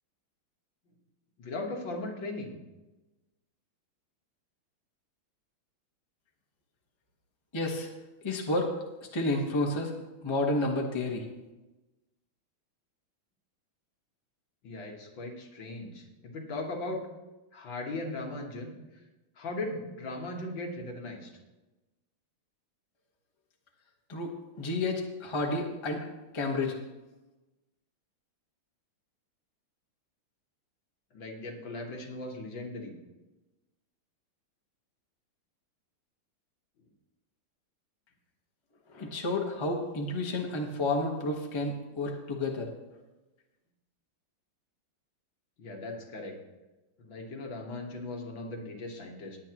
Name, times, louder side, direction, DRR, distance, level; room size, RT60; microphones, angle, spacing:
voice 1, 1.4-2.6 14.6-17.0 17.5-19.0 19.4-21.3 31.1-33.0 45.6-46.3 47.0-49.4, left 2 dB, 60° left, 1 dB, 2.2 m, -38 dB
voice 2, 7.5-7.9 8.2-8.7 9.1-9.9 10.2-11.3 24.1-26.0 26.3-26.8 38.9-42.7, left 2 dB, 15° left, 0 dB, 1.0 m, -30 dB
19.5 x 8.5 x 3.0 m, 1.1 s
omnidirectional pair, 2.4 m